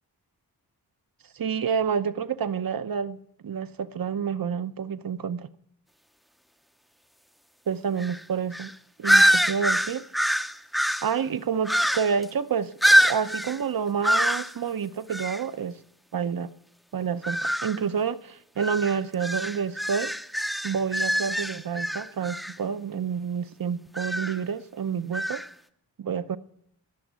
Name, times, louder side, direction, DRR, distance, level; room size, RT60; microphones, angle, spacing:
voice 1, 1.3-5.5 7.7-8.7 9.0-10.0 11.0-15.8 16.1-16.5 16.9-20.1 20.6-25.4 26.0-26.4, right 7 dB, 60° right, 0.8 m, -29 dB
sound 1, 8.0-8.2 8.5-8.7 9.0-11.1 11.7-12.2 12.8-13.6 14.0-14.5 15.1-15.4 17.2-17.8 18.6-22.5 24.0-24.4 25.1-25.5, equal, ahead, 0.6 m, -24 dB
21.5 x 7.2 x 9.3 m
wide cardioid pair, 145°, 39 cm